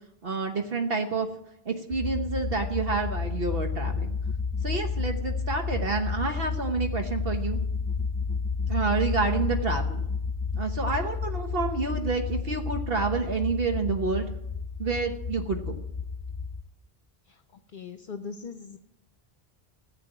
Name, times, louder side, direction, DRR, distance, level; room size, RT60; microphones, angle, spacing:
voice 1, 0.2-1.3 1.7-4.1 4.6-7.6 8.7-10.0 10.6-14.3 14.8-15.8, right 4 dB, 65° right, 4 dB, 1.4 m, -29 dB
sound 1, 1.9-16.6, left 5 dB, 30° left, 0.4 m, -31 dB
voice 2, 17.7-18.8, left 5 dB, 55° left, 9 dB, 0.9 m, -39 dB
15.0 x 8.2 x 8.9 m, 0.79 s
omnidirectional pair, 1.1 m